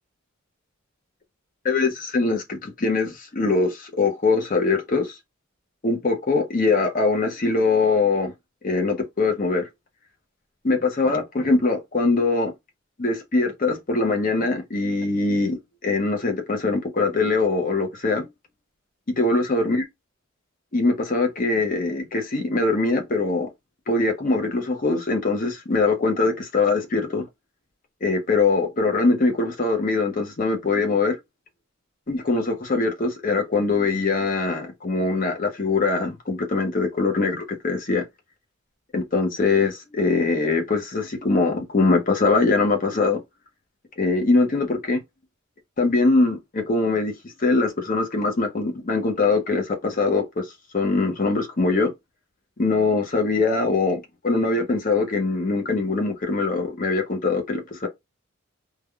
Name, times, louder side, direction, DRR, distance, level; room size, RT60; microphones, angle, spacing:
voice 1, 1.6-5.1 5.8-8.3 8.6-9.7 10.6-12.5 13.0-18.3 19.2-19.8 20.7-23.5 23.9-27.2 28.0-31.2 32.1-38.0 38.9-43.2 44.0-45.0 45.8-50.4 50.7-51.9 52.6-57.9, left 3 dB, 40° left, 0.7 m, -22 dB
3.3 x 2.2 x 2.3 m
head